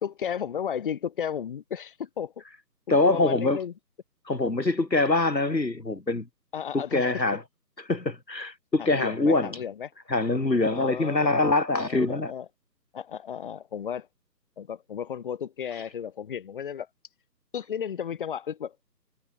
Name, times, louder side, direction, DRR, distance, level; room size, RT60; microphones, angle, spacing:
voice 1, 0.0-2.4 2.9-3.7 6.5-7.2 8.8-9.9 10.7-11.4 11.8-12.5 12.9-14.1 14.6-16.9 17.5-18.8, left 8 dB, 30° left, 3.2 m, -34 dB
voice 2, 2.9-3.6 4.3-6.3 6.7-7.4 7.9-9.6 10.1-12.3, left 2 dB, 90° left, 5.9 m, -24 dB
figure-of-eight pair, 155°, 49 cm